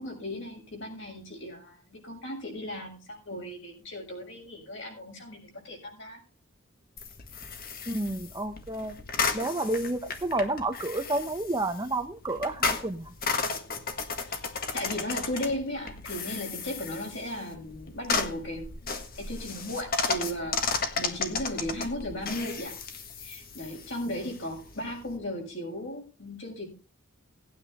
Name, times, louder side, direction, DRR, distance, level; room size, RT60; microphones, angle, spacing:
voice 1, 0.0-6.2 14.2-14.4 14.7-22.7 23.2-26.7, left 1 dB, 55° left, 1 dB, 6.6 m, -36 dB
sound 1, 7.0-25.2, left 4 dB, 40° left, 1.6 m, -34 dB
voice 2, 7.9-8.9 9.3-13.1, right 2 dB, 20° right, 8 dB, 0.7 m, -30 dB
18.5 x 9.4 x 3.5 m, 0.31 s
head